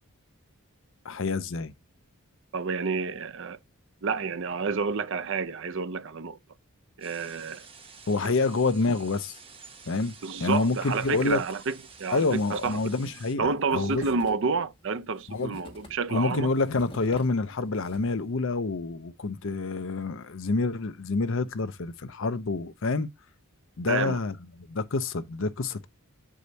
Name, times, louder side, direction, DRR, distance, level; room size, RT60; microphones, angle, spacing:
voice 1, 1.0-1.7 8.1-9.4 9.9-11.4 12.1-14.0 15.3-15.6 16.1-23.1 23.8-25.9, left 3 dB, 60° left, 0.6 m, -28 dB
voice 2, 2.5-3.6 4.0-6.4 7.0-7.6 10.2-11.7 12.0-12.8 13.4-16.5 23.9-24.2, right 4 dB, 55° right, 0.6 m, -29 dB
sound 1, 7.0-13.4, right 5 dB, 25° right, 0.9 m, -50 dB
sound 2, 10.7-11.6 11.9-12.0 12.2-18.3, left 1 dB, 25° left, 1.8 m, -49 dB
8.0 x 4.9 x 2.7 m
head